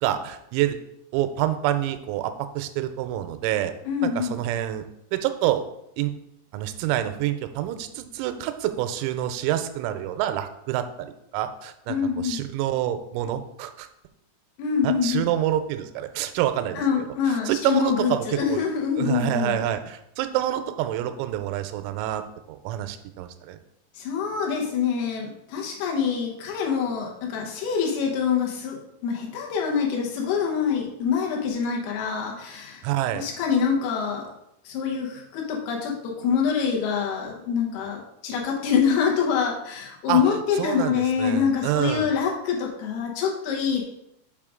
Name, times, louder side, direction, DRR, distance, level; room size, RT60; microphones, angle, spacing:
voice 1, 0.0-0.8 1.1-3.7 4.0-4.9 5.1-5.6 6.0-6.1 6.5-13.9 14.8-16.8 17.3-18.7 19.0-22.2 22.5-23.6 32.8-33.2 40.1-40.2 40.6-42.1, right 12 dB, 85° right, 9 dB, 3.2 m, -27 dB
voice 2, 3.9-4.4 11.9-12.4 14.6-15.3 16.8-19.7 23.9-32.8 33.1-34.3 34.6-43.8, left 7 dB, 85° left, -1 dB, 2.2 m, -25 dB
7.4 x 4.8 x 3.7 m, 0.80 s
omnidirectional pair, 6.0 m